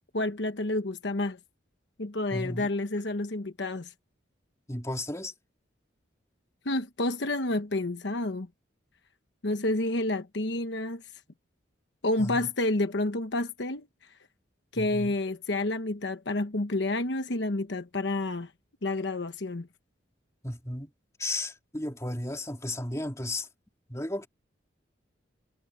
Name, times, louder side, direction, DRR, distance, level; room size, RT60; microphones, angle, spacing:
voice 1, 0.1-1.4 2.0-3.9 6.6-8.5 9.4-11.0 12.0-13.9 14.7-18.5 18.8-19.7, left 2 dB, 70° left, 1.1 m, -29 dB
voice 2, 2.3-2.7 4.7-5.3 12.2-12.5 14.7-15.1 20.4-20.9 21.2-23.5 23.9-24.3, left 1 dB, 15° left, 3.3 m, -34 dB
head